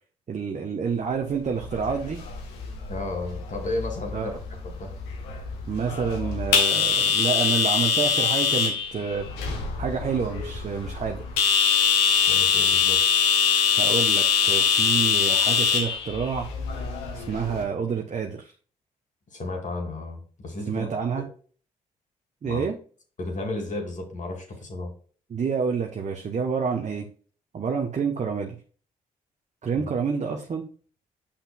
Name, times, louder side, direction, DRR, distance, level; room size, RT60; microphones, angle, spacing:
voice 1, 0.3-2.2 4.1-4.3 5.7-9.3 9.8-11.2 13.8-16.5 17.1-18.5 20.7-21.2 22.4-22.8 25.3-27.1 27.5-28.6 29.6-30.7, right 6 dB, 45° right, 3 dB, 1.0 m, -28 dB
sound 1, 1.5-17.6, left 6 dB, 85° left, 1.2 m, -24 dB
voice 2, 2.9-4.3 4.6-4.9 12.3-13.0 19.3-20.9 22.4-22.7 23.2-24.9 29.8-29.9, left 2 dB, 50° left, 3 dB, 2.7 m, -33 dB
8.5 x 5.7 x 2.3 m, 0.42 s
hypercardioid pair, 45°, 17 cm